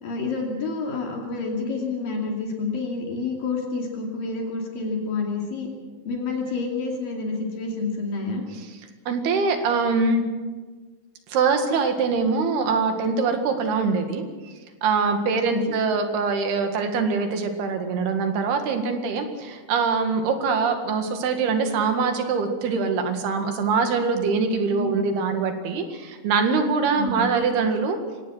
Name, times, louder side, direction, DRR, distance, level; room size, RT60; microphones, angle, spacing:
voice 1, 0.0-5.7 6.1-8.4 15.3-15.7 24.7-24.9 25.2-25.3 27.0-27.3, left 3 dB, 60° left, 0 dB, 4.2 m, -28 dB
voice 2, 9.1-10.2 11.3-14.5 14.8-28.0, right 4 dB, 75° right, 5 dB, 3.9 m, -23 dB
24.0 x 18.5 x 6.4 m, 1.4 s
omnidirectional pair, 4.6 m